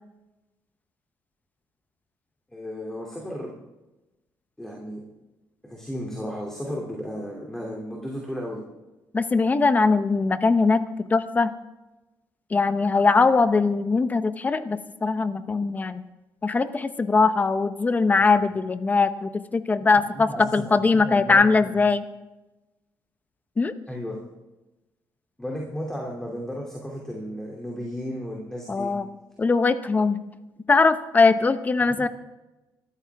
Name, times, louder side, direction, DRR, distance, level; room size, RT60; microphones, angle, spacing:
voice 1, 2.5-3.5 4.6-5.0 5.6-8.6 20.0-21.7 23.9-24.2 25.4-28.9 31.8-32.1, equal, 5° left, -2 dB, 2.8 m, -34 dB
voice 2, 9.1-11.5 12.5-16.0 16.4-22.0 23.6-23.7 28.7-29.0 29.4-30.2 30.7-32.1, left 4 dB, 25° left, 12 dB, 0.9 m, -21 dB
24.0 x 13.0 x 3.5 m, 1.0 s
cardioid pair, 125°, 7 cm